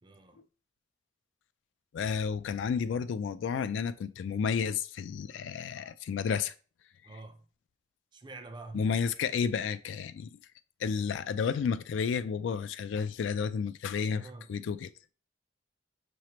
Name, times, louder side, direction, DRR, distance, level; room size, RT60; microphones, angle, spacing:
voice 1, 0.0-0.4 7.0-7.4 8.1-8.9 14.1-14.5, right 2 dB, 25° right, 0.4 m, -46 dB
voice 2, 1.9-6.5 8.7-10.4 10.8-14.9, left 6 dB, 75° left, 0.3 m, -31 dB
5.7 x 3.1 x 2.8 m
head